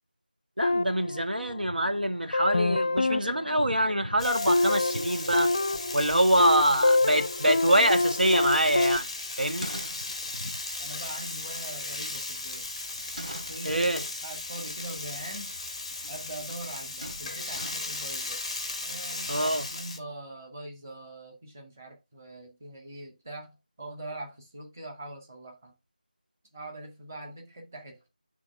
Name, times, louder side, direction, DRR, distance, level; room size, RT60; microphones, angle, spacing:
sound 1, 0.6-1.9 2.3-9.0, left 2 dB, 35° left, 0.5 m, -27 dB
voice 1, 0.6-5.5 5.9-9.1 9.4-9.7 13.6-14.0 19.3-19.7, right 1 dB, 90° right, 1.4 m, -25 dB
Frying (food), 4.2-20.0, left 3 dB, 5° left, 0.7 m, -37 dB
sound 2, 9.5-10.5 12.8-13.8 15.5-15.6 15.9-16.2 16.4-16.7 17.0-18.0, right 1 dB, 60° right, 3.8 m, -43 dB
voice 2, 10.8-12.7 13.5-15.6 16.1-18.4 18.8-25.7 26.5-28.1, right 1 dB, 20° right, 1.9 m, -42 dB
9.6 x 3.5 x 3.5 m
figure-of-eight pair, 170°, 5 cm